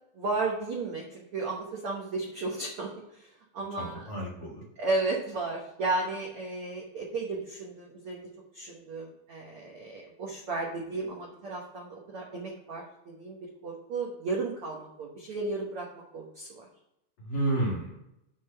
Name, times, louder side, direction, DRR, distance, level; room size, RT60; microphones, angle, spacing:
voice 1, 0.1-4.0 4.8-8.3 8.5-15.9 16.1-16.7, right 3 dB, 65° right, -2 dB, 1.4 m, -34 dB
voice 2, 3.7-4.6 17.2-18.0, right 1 dB, 45° left, -4 dB, 2.2 m, -31 dB
8.5 x 3.8 x 6.6 m, 0.86 s
omnidirectional pair, 4.0 m